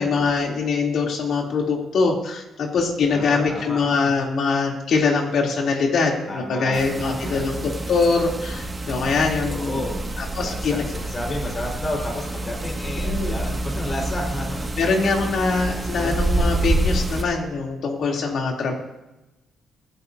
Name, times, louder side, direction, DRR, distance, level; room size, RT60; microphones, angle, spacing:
voice 1, 0.0-9.8 10.2-10.8 13.0-13.4 14.8-18.7, left 4 dB, 65° left, 0 dB, 3.1 m, -23 dB
voice 2, 3.1-3.8 6.3-7.5 9.5-10.0 10.3-14.7 15.9-16.2, left 1 dB, 35° left, -1 dB, 4.9 m, -32 dB
sound 1, 6.7-17.2, right 2 dB, 20° right, 2.0 m, -27 dB
25.0 x 10.0 x 2.8 m, 1.0 s
cardioid pair, 90°, 0 cm